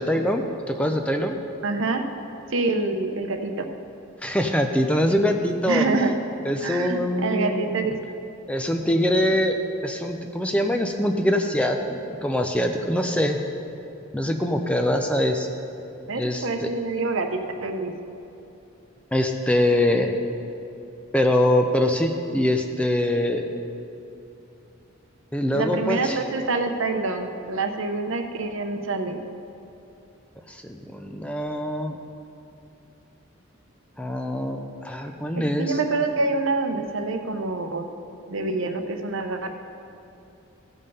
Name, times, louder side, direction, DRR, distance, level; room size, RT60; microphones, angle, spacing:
voice 1, 0.0-1.4 4.2-5.9 6.4-7.8 8.5-9.6 9.8-13.4 14.1-15.5 16.2-16.7 19.1-20.1 21.1-23.5 25.3-26.2 30.5-32.0 34.0-35.8, left 1 dB, 5° left, 4 dB, 0.5 m, -23 dB
voice 2, 1.6-2.0 2.5-3.7 5.7-6.1 6.6-8.0 16.1-17.9 25.5-29.2 35.6-37.9 38.3-39.5, right 3 dB, 70° right, 5 dB, 0.8 m, -26 dB
16.0 x 5.5 x 5.5 m, 2.7 s
head